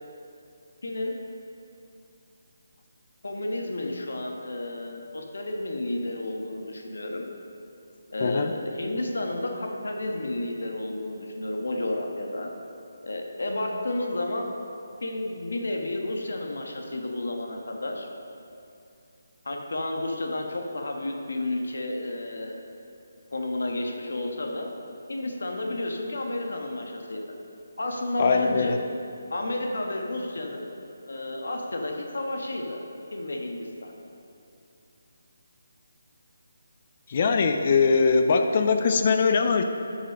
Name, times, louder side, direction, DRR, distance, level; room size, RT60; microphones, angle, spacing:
voice 1, 0.8-1.2 3.2-7.2 8.1-12.5 13.0-14.5 15.0-18.1 19.4-22.6 23.3-24.7 25.1-27.2 27.8-28.8 29.3-30.6 31.1-32.8 33.1-33.9, left 1 dB, 80° left, 2 dB, 1.2 m, -31 dB
voice 2, 8.2-8.5 28.2-28.8 37.1-39.6, left 4 dB, 30° left, 6 dB, 0.4 m, -21 dB
9.8 x 5.1 x 5.2 m, 2.6 s
hypercardioid pair, 175°, 0 cm